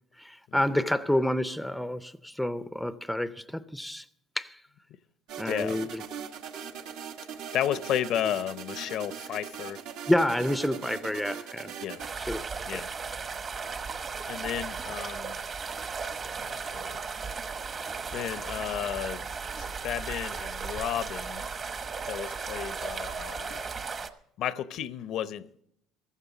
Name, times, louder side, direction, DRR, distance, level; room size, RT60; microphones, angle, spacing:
voice 1, 0.2-4.0 4.4-4.6 5.4-6.0 10.1-11.7 12.2-12.8, left 1 dB, ahead, 0.5 m, -29 dB
sound 1, 5.3-12.1, right 7 dB, 75° right, 1.4 m, -40 dB
voice 2, 5.4-5.9 7.5-9.8 11.8-12.0 12.6-12.9 14.3-15.4 16.3-17.0 18.1-19.3 19.6-21.4 22.1-23.7 24.4-25.5, left 11 dB, 60° left, 0.6 m, -33 dB
sound 2, 12.0-24.1, right 5 dB, 30° right, 1.0 m, -36 dB
15.0 x 14.0 x 3.9 m
cardioid pair, 130°, 0 cm